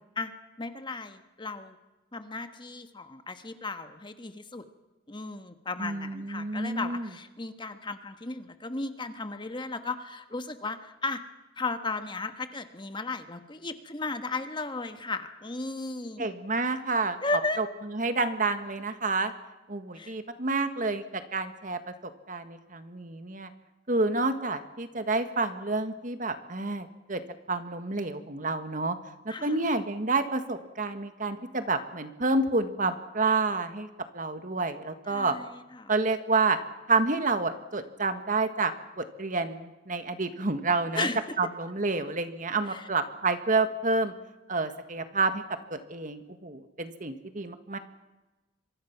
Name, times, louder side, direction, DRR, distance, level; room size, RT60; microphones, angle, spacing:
voice 1, 0.6-1.8 2.1-4.6 5.1-11.2 11.6-16.3 17.2-17.6 19.9-20.1 29.3-29.6 35.1-35.9 40.9-41.4 42.6-42.9, left 3 dB, 25° left, 8 dB, 1.4 m, -35 dB
voice 2, 5.8-7.1 16.2-17.2 17.6-17.7 17.9-19.3 19.7-21.0 21.3-21.8 22.3-23.5 23.9-27.2 27.5-29.0 29.2-33.9 34.1-35.3 35.9-36.6 36.9-41.1 41.4-44.1 44.5-45.4 45.7-47.8, right 3 dB, 45° right, 9 dB, 1.7 m, -29 dB
26.5 x 24.0 x 6.0 m, 1.1 s
head